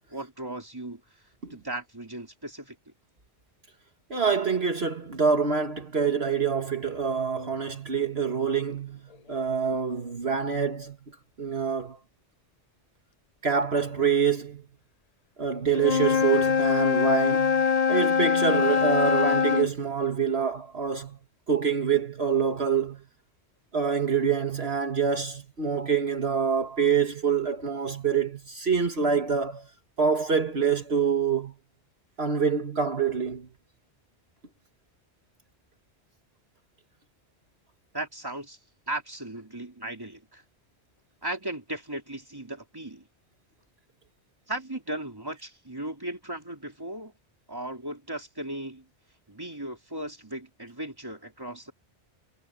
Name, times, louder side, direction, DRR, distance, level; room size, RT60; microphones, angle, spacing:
voice 1, 0.1-1.0 1.5-2.8 37.9-38.6 38.9-40.4 41.2-43.1 44.5-47.1 47.5-48.9 49.3-51.7, right 1 dB, 20° right, 3.7 m, -36 dB
voice 2, 4.1-9.0 9.3-11.0 11.4-12.0 13.4-14.6 15.4-21.2 21.5-23.0 23.7-29.7 30.0-31.5 32.2-33.5, right 6 dB, 65° right, 2.0 m, -26 dB
Wind instrument woodwind instrument, 15.7-19.7, left 6 dB, 40° left, 0.7 m, -23 dB
omnidirectional pair, 1.1 m